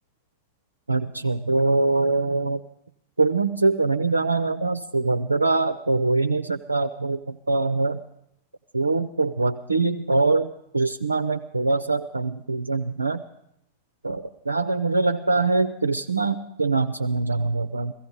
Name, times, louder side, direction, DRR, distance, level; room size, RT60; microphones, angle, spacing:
voice 1, 0.9-2.6 3.2-8.0 8.7-13.2 14.0-17.9, right 3 dB, 80° right, 8 dB, 0.5 m, -23 dB
16.0 x 16.0 x 5.3 m, 0.77 s
figure-of-eight pair, 90°, 0 cm